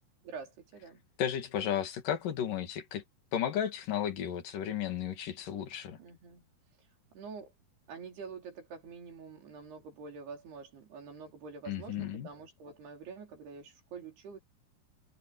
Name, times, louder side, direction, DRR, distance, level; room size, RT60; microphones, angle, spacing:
voice 1, 0.2-1.0 6.0-6.4 7.1-7.5 7.9-14.4, right 5 dB, 80° right, 6.4 m, -46 dB
voice 2, 1.2-3.0 3.3-6.0 11.7-12.3, left 9 dB, 60° left, 4.0 m, -34 dB
omnidirectional pair, 4.6 m